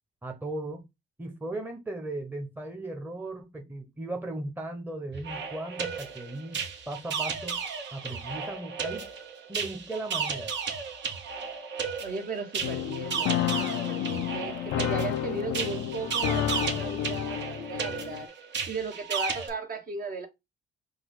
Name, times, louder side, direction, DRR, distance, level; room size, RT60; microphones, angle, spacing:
voice 1, 0.2-0.8 1.2-7.6 7.9-9.1 9.5-10.5, right 2 dB, 10° right, 0.9 m, -37 dB
sound 1, 5.1-19.5, right 6 dB, 65° right, 1.2 m, -34 dB
voice 2, 12.0-18.3 18.7-20.3, right 3 dB, 45° right, 1.3 m, -36 dB
sound 2, 12.6-18.3, left 11 dB, 80° left, 0.4 m, -31 dB
4.9 x 2.3 x 3.8 m
cardioid pair, 90°, 20 cm